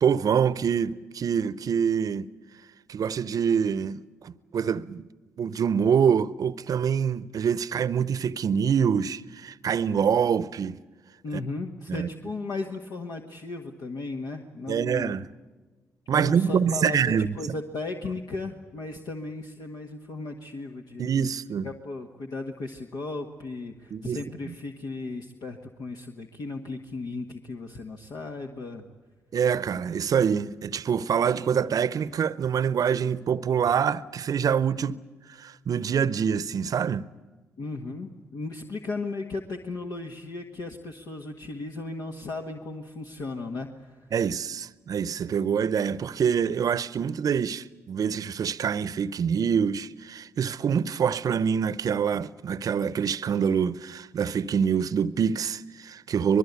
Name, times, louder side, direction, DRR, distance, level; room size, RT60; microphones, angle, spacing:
voice 1, 0.0-2.3 2.9-5.1 5.4-10.8 11.3-11.4 11.9-12.1 14.7-15.3 16.1-17.3 21.0-21.7 23.9-24.2 24.5-24.6 29.3-35.0 35.3-37.1 44.1-56.4, right 7 dB, 55° right, 0.8 m, -25 dB
voice 2, 11.2-15.2 16.1-17.0 17.4-21.3 21.6-28.8 37.6-43.9, left 3 dB, 60° left, 1.6 m, -36 dB
24.5 x 21.5 x 8.3 m
hypercardioid pair, 40°, 7 cm